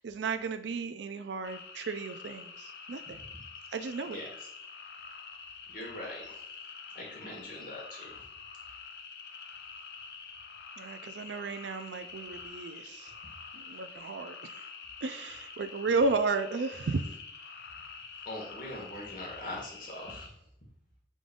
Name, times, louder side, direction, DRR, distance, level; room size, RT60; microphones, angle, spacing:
voice 1, 0.0-3.2 3.7-4.2 10.8-13.1 13.5-14.6 15.0-17.0, right 4 dB, 90° right, 9 dB, 0.4 m, -33 dB
sound 1, 1.4-20.3, left 5 dB, 70° left, 0.5 m, -46 dB
voice 2, 5.7-6.5 6.9-8.2 18.2-20.3, left 1 dB, 50° left, -2 dB, 1.4 m, -42 dB
5.1 x 3.7 x 2.5 m, 0.75 s
head